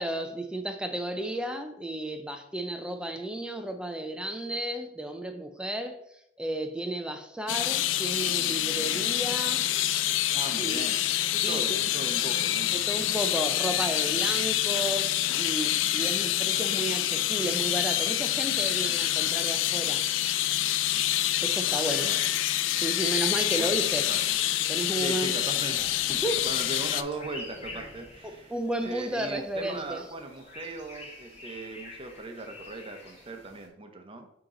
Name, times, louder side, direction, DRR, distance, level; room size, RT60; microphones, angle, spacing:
voice 1, 0.0-6.0 6.4-9.7 10.6-10.8 11.4-11.8 12.7-20.0 21.4-22.1 22.8-24.1 24.7-25.4 26.1-26.4 28.2-30.0, right 1 dB, 5° right, 6 dB, 0.4 m, -33 dB
sound 1, 7.5-27.0, left 13 dB, 85° left, 0.3 m, -27 dB
voice 2, 10.3-12.8 21.6-22.2 23.0-23.8 24.1-24.2 25.0-28.5 28.8-34.3, right 2 dB, 30° right, 5 dB, 0.8 m, -39 dB
sound 2, 22.8-33.7, left 2 dB, 35° left, 1.6 m, -47 dB
8.8 x 3.0 x 3.7 m, 0.77 s
head